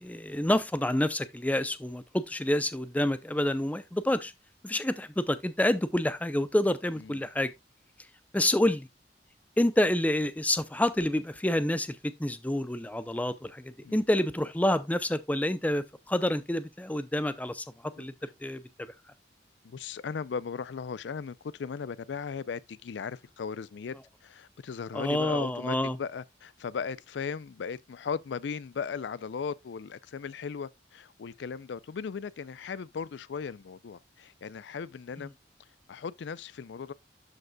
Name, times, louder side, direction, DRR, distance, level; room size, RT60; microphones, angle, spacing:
voice 1, 0.0-4.3 4.6-7.5 8.3-8.9 9.6-18.1 18.4-18.9 24.9-26.0, left 1 dB, 10° left, 0.5 m, -28 dB
voice 2, 19.6-24.0 24.2-35.3 35.9-36.9, left 6 dB, 90° left, 0.4 m, -37 dB
12.0 x 5.3 x 2.2 m
head